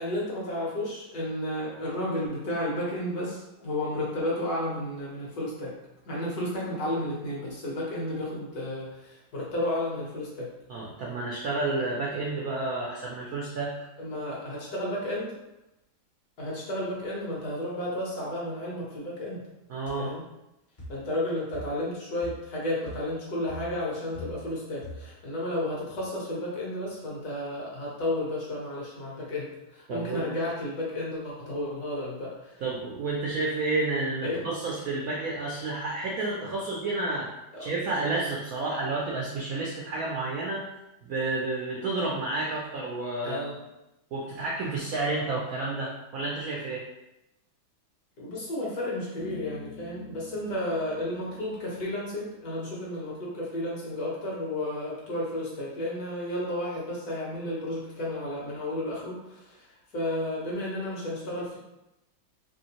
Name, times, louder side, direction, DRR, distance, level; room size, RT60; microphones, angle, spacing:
voice 1, 0.0-5.7 6.1-10.5 14.0-15.3 16.4-19.4 20.0-20.2 20.9-32.6 34.2-34.4 37.5-37.7 43.2-43.5 48.2-59.7 59.9-61.6, left 1 dB, 55° left, -6 dB, 1.3 m, -32 dB
voice 2, 10.7-13.7 19.7-20.1 29.9-30.2 32.6-37.3 37.6-40.6 41.0-43.6 44.1-46.8, right 2 dB, 85° right, -3 dB, 0.7 m, -30 dB
sound 1, 19.9-20.0 20.8-21.1 21.5-21.9 22.2-22.5 22.9-23.2 23.5-24.6 24.8-25.2, left 1 dB, 35° left, 0.7 m, -43 dB
Bass guitar, 49.2-52.6, left 4 dB, 75° left, 1.4 m, -49 dB
3.4 x 3.1 x 2.9 m, 0.92 s
omnidirectional pair, 2.2 m